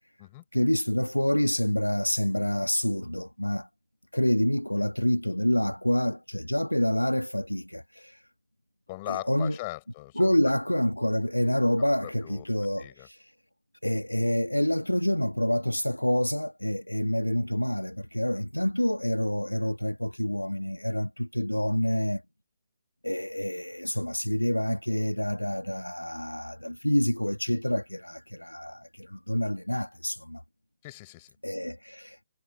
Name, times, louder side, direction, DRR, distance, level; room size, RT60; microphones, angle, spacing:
voice 1, 0.5-3.7 4.1-8.2 9.1-9.6 10.1-13.2 13.8-22.2 23.0-30.4 31.4-32.2, left 1 dB, 90° left, 1.6 m, -27 dB
voice 2, 8.9-10.5 12.2-12.4 12.8-13.1 30.8-31.3, left 20 dB, 30° left, 7.6 m, -39 dB
figure-of-eight pair, 135°, 0 cm